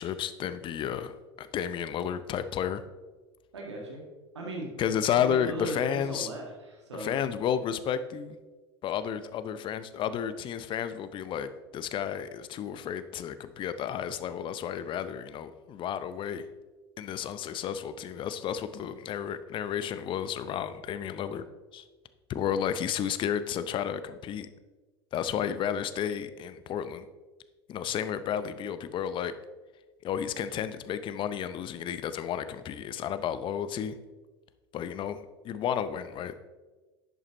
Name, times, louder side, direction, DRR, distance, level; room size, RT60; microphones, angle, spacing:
voice 1, 0.0-2.8 4.8-6.3 6.9-8.4 8.8-11.5 11.7-16.4 17.0-21.4 21.7-21.8 22.3-24.5 25.1-27.0 27.7-29.3 30.0-33.9 34.7-36.3, left 9 dB, 35° left, 12 dB, 0.7 m, -32 dB
voice 2, 3.5-4.0 4.3-4.7 5.2-7.2, right 1 dB, 80° right, -1 dB, 1.9 m, -37 dB
11.0 x 8.0 x 3.0 m, 1.2 s
figure-of-eight pair, 80°, 14 cm